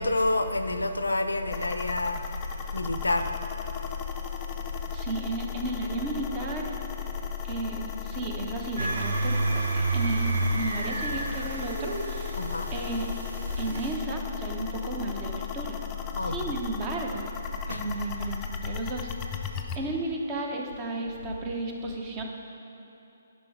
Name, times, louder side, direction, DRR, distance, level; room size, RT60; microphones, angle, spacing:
voice 1, 0.0-2.4 2.7-3.4 3.8-4.1 4.7-5.0 12.3-12.7 16.1-16.5 17.7-17.9, left 2 dB, 80° left, 8 dB, 0.5 m, -29 dB
sound 1, 1.5-19.8, left 8 dB, 20° left, 0.5 m, -36 dB
voice 2, 4.9-6.8 7.4-12.4 12.7-13.1 13.6-15.8 16.2-17.3 17.7-19.1 19.5-22.2, right 2 dB, 25° right, 2 dB, 0.9 m, -34 dB
sound 2, 8.8-13.9, right 2 dB, 65° right, 0.8 m, -30 dB
10.5 x 5.4 x 4.7 m, 3.0 s
figure-of-eight pair, 135°, 0 cm